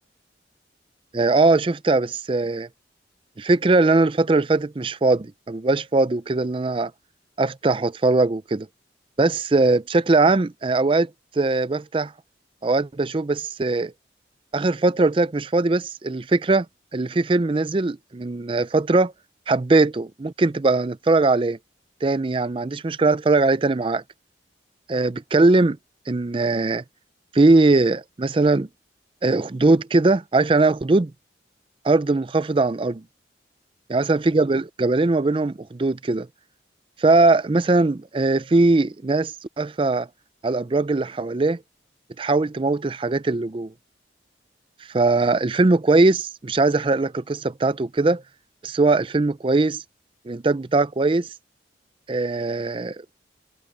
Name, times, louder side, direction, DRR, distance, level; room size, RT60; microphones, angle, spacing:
voice 1, 1.1-2.7 3.4-6.9 7.4-8.7 9.2-11.1 11.4-12.1 12.6-13.9 14.5-16.7 16.9-19.1 19.5-21.6 22.0-24.0 24.9-25.8 26.1-26.8 27.3-28.7 29.2-31.1 31.8-33.0 33.9-36.3 37.0-40.1 40.4-41.6 42.2-43.7 44.9-48.2 48.6-49.8 50.3-51.3 52.1-53.0, right 3 dB, 30° right, 0.5 m, -20 dB
head